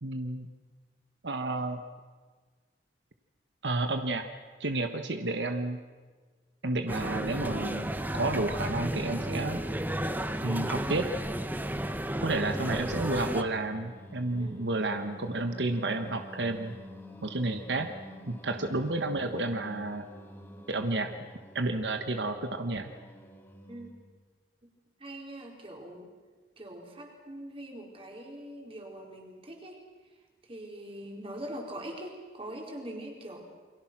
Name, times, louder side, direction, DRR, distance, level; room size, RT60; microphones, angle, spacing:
voice 1, 0.0-0.5 1.2-1.8 3.6-4.2 4.6-5.8 6.6-9.6 10.4-11.1 12.2-16.7 17.2-17.9 18.3-20.1 20.7-21.1 21.5-22.9, right 2 dB, 90° right, 7 dB, 1.4 m, -31 dB
sound 1, 6.9-13.4, right 1 dB, 10° right, 1.1 m, -33 dB
voice 2, 12.1-12.6 14.4-14.8 23.7-23.9 25.0-26.1 26.6-29.8 30.4-33.4, right 1 dB, 35° right, 1 dB, 4.5 m, -43 dB
Singing, 13.0-24.1, equal, 10° left, 3.1 m, -49 dB
29.0 x 23.0 x 6.1 m, 1.4 s
head